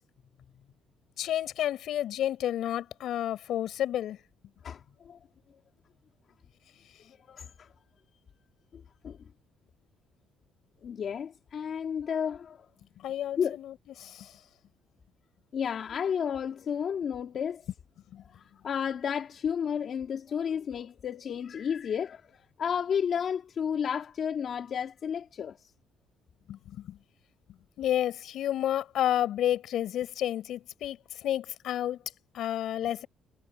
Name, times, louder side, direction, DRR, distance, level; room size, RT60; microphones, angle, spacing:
voice 1, 1.2-4.2 13.0-13.7 14.0-14.3 18.1-18.2 26.5-27.0 27.8-32.0 32.3-33.1, left 11 dB, 60° left, 5.7 m, -30 dB
voice 2, 4.6-5.2 7.1-7.7 8.7-9.2 10.8-12.7 13.4-13.6 15.5-17.6 18.3-22.2 22.6-25.7, left 7 dB, 40° left, 3.0 m, -32 dB
cardioid pair, 160°, 0 cm